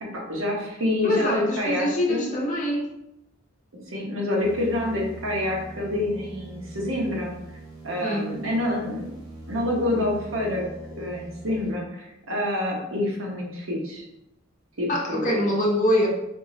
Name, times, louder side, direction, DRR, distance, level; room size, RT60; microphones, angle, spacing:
voice 1, 0.0-2.4 3.7-7.3 7.8-9.1 9.5-10.7 10.9-14.1 14.8-15.5, left 1 dB, 75° right, -2 dB, 1.0 m, -27 dB
voice 2, 1.0-2.9 8.0-8.3 14.9-16.1, left 1 dB, 40° left, -3 dB, 0.8 m, -24 dB
sound 1, 4.4-11.7, right 2 dB, 20° right, 0.7 m, -42 dB
3.6 x 3.1 x 2.7 m, 0.87 s
head